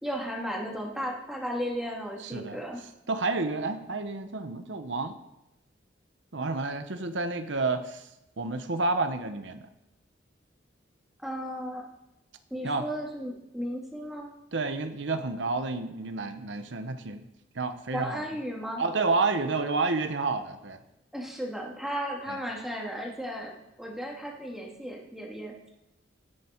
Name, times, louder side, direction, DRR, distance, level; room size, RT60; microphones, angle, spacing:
voice 1, 0.0-2.8 11.2-11.8 12.5-14.3 17.9-18.8 21.1-23.5 23.8-25.7, equal, ahead, -2 dB, 2.6 m, -35 dB
voice 2, 2.2-2.6 3.1-5.2 6.3-8.1 8.4-9.7 12.6-12.9 14.5-17.2 17.5-18.2 18.8-20.8 22.3-22.4, right 3 dB, 80° right, 8 dB, 0.9 m, -30 dB
17.0 x 9.9 x 4.5 m, 0.88 s
head